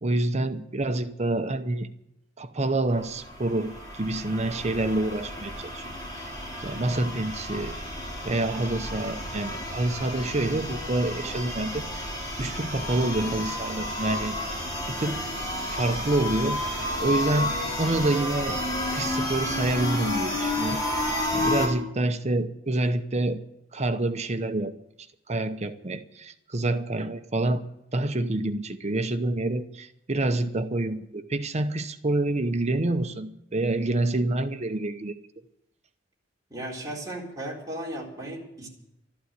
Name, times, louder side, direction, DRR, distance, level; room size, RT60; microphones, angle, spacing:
voice 1, 0.0-1.9 2.4-5.8 6.2-6.3 6.6-7.7 8.2-12.1 12.4-14.3 14.9-15.3 15.7-18.6 18.9-23.4 23.7-24.7 25.3-27.6 27.9-35.2, right 2 dB, 35° right, 9 dB, 0.8 m, -27 dB
sound 1, 2.9-21.7, left 1 dB, 20° left, 4.4 m, -31 dB
voice 2, 36.5-38.7, right 1 dB, 20° right, -3 dB, 4.0 m, -36 dB
13.0 x 12.0 x 8.1 m, 0.83 s
head